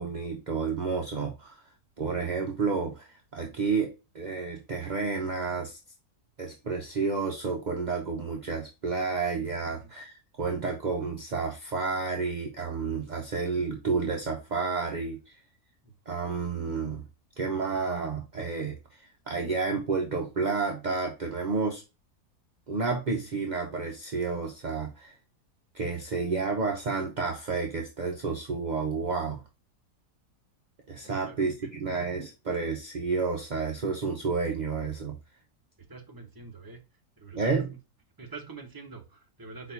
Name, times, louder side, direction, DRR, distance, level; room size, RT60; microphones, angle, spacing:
voice 1, 0.0-1.6 2.0-5.8 6.4-15.4 16.1-17.0 17.4-21.8 22.7-25.1 25.7-29.4 30.9-35.1 37.4-37.7, right 4 dB, 50° right, 0.5 m, -30 dB
voice 2, 9.6-9.9 15.8-15.9 31.0-31.7 35.9-36.8 37.2-37.5 38.2-39.7, right 4 dB, 15° right, 0.8 m, -45 dB
4.7 x 4.1 x 2.7 m
omnidirectional pair, 1.7 m